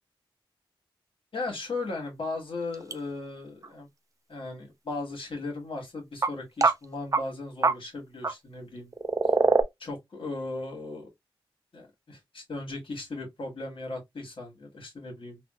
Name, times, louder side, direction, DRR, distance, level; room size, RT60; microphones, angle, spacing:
voice 1, 1.3-3.9 4.3-8.9 9.8-11.1 11.7-15.4, left 2 dB, 65° left, 1.5 m, -37 dB
sound 1, 2.7-2.9 3.6-3.7 6.2-6.3 6.6-6.7 7.1-7.2 7.6-7.7 8.2-8.3 8.9-9.6, right 4 dB, 35° right, 0.4 m, -22 dB
3.6 x 2.4 x 2.3 m
cardioid pair, 60°, 9 cm